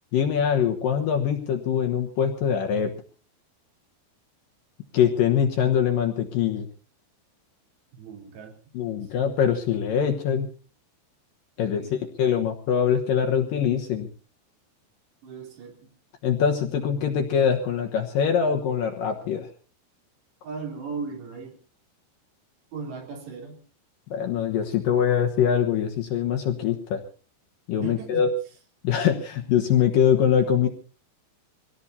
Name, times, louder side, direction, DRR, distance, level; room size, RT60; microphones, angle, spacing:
voice 1, 0.1-2.9 4.9-6.7 8.7-10.5 11.6-11.8 12.2-14.1 16.2-19.5 24.1-27.0 27.7-28.3 28.8-30.7, left 8 dB, 65° left, 3 dB, 2.4 m, -23 dB
voice 2, 7.9-8.6 9.0-9.1 11.6-12.0 15.2-16.0 20.4-21.6 22.7-23.6 27.8-28.3, right 5 dB, 75° right, 2 dB, 5.5 m, -37 dB
24.5 x 18.0 x 2.7 m, 0.37 s
omnidirectional pair, 5.0 m